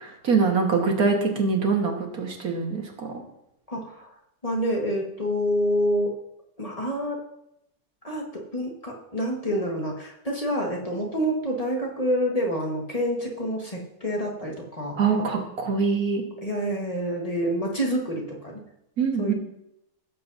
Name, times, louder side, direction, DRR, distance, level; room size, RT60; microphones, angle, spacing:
voice 1, 0.2-3.2 15.0-16.2 19.0-19.3, right 5 dB, 80° right, 2 dB, 1.9 m, -24 dB
voice 2, 3.7-4.1 4.4-6.1 6.6-7.2 8.0-15.0 15.3-15.4 16.4-18.6 19.2-19.3, equal, 25° left, -1 dB, 1.5 m, -27 dB
16.5 x 7.6 x 2.7 m, 0.82 s
omnidirectional pair, 1.5 m